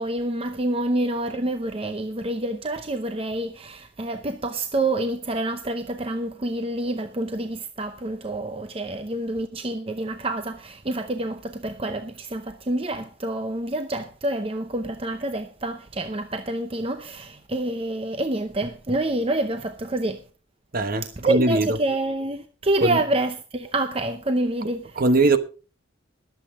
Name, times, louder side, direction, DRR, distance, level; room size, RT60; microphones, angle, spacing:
voice 1, 0.0-20.2 21.0-25.0, right 2 dB, 30° right, 0.7 m, -27 dB
voice 2, 20.7-21.8 22.8-23.0 24.9-25.4, right 2 dB, 45° right, 1.1 m, -21 dB
21.0 x 8.1 x 3.7 m
head